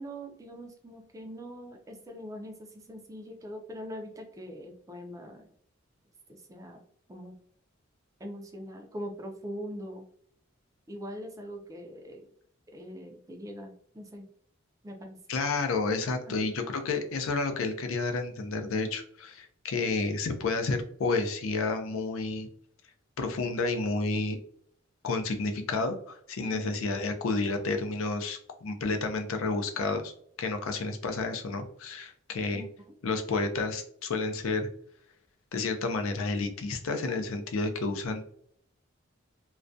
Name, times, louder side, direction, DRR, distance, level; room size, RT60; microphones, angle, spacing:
voice 1, 0.0-5.5 6.3-6.8 7.1-7.3 8.2-10.0 10.9-12.3 12.7-14.3 14.8-15.2 16.3-16.5 26.5-26.8 32.5-32.9, equal, 15° right, 3 dB, 0.3 m, -42 dB
voice 2, 15.3-22.5 23.2-24.4 25.0-30.1 30.4-32.6 33.0-34.7 35.5-38.3, left 3 dB, 80° left, 6 dB, 0.4 m, -30 dB
2.3 x 2.1 x 2.5 m, 0.64 s
head